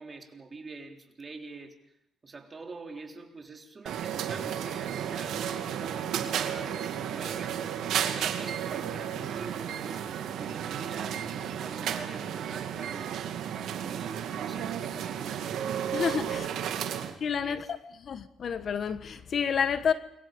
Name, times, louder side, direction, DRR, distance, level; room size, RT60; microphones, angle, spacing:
voice 1, 0.0-1.9 2.2-5.5 5.8-7.7 8.1-15.7 16.3-17.0 17.4-17.7, right 3 dB, 30° right, 3.7 m, -45 dB
sound 1, 3.9-17.1, right 9 dB, 80° right, 2.3 m, -33 dB
voice 2, 15.9-16.5 17.2-17.8 18.0-19.9, left 7 dB, 55° left, 1.4 m, -29 dB
28.5 x 24.0 x 5.3 m
cardioid pair, 90°, 0 cm